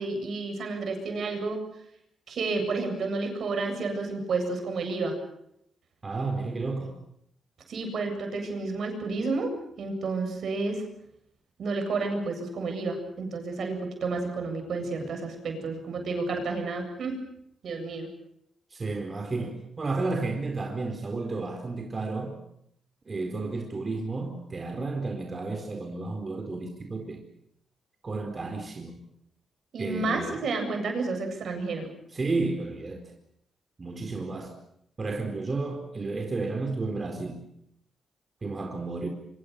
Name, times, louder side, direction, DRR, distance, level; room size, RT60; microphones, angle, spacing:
voice 1, 0.0-1.6 2.3-5.1 7.7-9.5 9.8-10.8 11.6-17.1 17.6-18.1 29.7-31.9, right 3 dB, 70° right, 4 dB, 7.9 m, -30 dB
voice 2, 6.0-6.9 18.7-22.4 23.1-27.2 28.0-29.0 29.8-30.4 32.1-33.0 33.8-34.5 35.0-37.4 38.4-39.1, right 3 dB, 40° right, 3 dB, 4.4 m, -32 dB
26.0 x 25.0 x 6.9 m, 0.73 s
cardioid pair, 60°, 0 cm